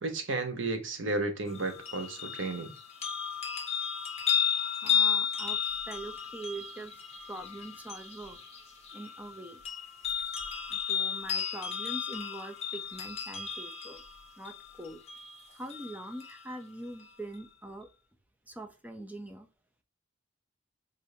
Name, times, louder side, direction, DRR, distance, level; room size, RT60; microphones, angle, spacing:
voice 1, 0.0-2.7, right 2 dB, 70° right, 0.9 m, -33 dB
sound 1, 1.5-16.5 17.0-17.1, left 7 dB, 35° left, 1.0 m, -34 dB
voice 2, 4.7-7.0 7.3-8.4 8.9-9.6 10.7-14.0 14.4-15.0 15.5-17.9 18.5-19.5, right 2 dB, 10° right, 0.6 m, -43 dB
4.8 x 2.7 x 2.7 m
head